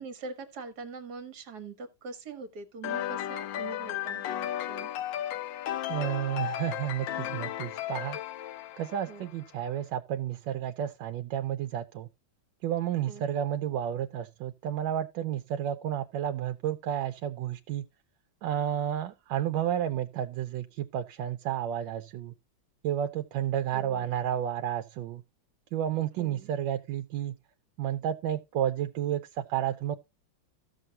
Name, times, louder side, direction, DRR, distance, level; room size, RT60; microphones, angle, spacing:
voice 1, 0.0-4.9 9.1-9.3 13.1-13.2 23.7-24.1 26.2-26.5, right 4 dB, 55° right, 1.6 m, -43 dB
sound 1, 2.8-9.5, left 12 dB, 75° left, 1.3 m, -35 dB
voice 2, 5.9-8.2 8.8-12.1 12.6-17.9 18.4-22.3 22.8-25.2 25.7-27.4 27.8-30.0, right 10 dB, 75° right, 1.3 m, -31 dB
14.5 x 6.2 x 2.8 m
omnidirectional pair, 2.2 m